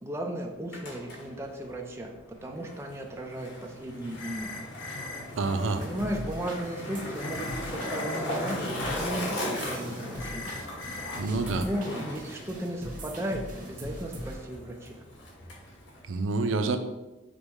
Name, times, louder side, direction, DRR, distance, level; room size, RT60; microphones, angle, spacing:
voice 1, 0.0-4.7 5.8-10.6 11.6-15.0, right 1 dB, 15° right, 1 dB, 0.4 m, -36 dB
Skateboard, 0.5-16.2, left 1 dB, 75° left, 1.2 m, -38 dB
sound 1, 4.2-5.2 7.2-8.2 10.2-11.2, left 3 dB, 90° left, 0.9 m, -40 dB
voice 2, 5.4-5.8 11.1-11.6 16.1-16.8, right 3 dB, 90° right, 8 dB, 0.4 m, -27 dB
sound 2, 5.6-14.4, equal, 45° right, 0.7 m, -42 dB
5.1 x 2.1 x 4.6 m, 1.0 s
head